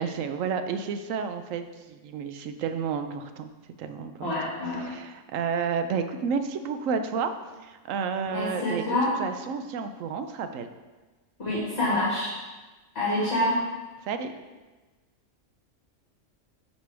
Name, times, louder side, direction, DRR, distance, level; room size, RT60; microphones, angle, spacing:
voice 1, 0.0-3.5 3.8-4.3 4.8-7.3 7.6-10.7 14.0-14.3, right 6 dB, 85° right, 8 dB, 1.0 m, -31 dB
voice 2, 4.2-4.9 8.3-9.1 11.4-12.3 12.9-13.6, left 1 dB, 55° left, -8 dB, 2.2 m, -27 dB
9.9 x 5.2 x 3.4 m, 1.2 s
omnidirectional pair, 1.3 m